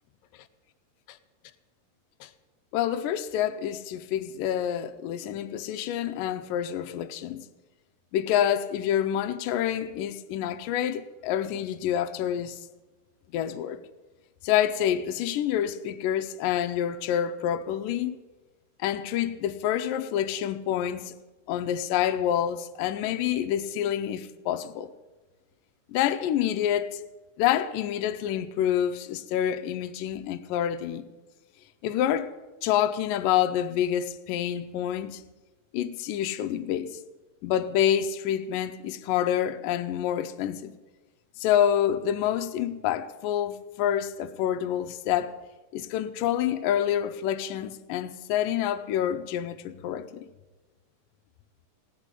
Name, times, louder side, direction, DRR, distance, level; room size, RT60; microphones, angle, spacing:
voice 1, 2.7-7.4 8.1-12.6 13.3-13.8 14.4-18.2 18.8-21.1 21.5-24.9 25.9-27.0 27.4-31.1 31.8-32.3 32.6-35.2 35.7-37.0 37.4-40.7 41.4-45.4 45.7-50.3, left 10 dB, 80° left, 2.3 m, -27 dB
17.5 x 6.3 x 9.7 m
omnidirectional pair, 4.0 m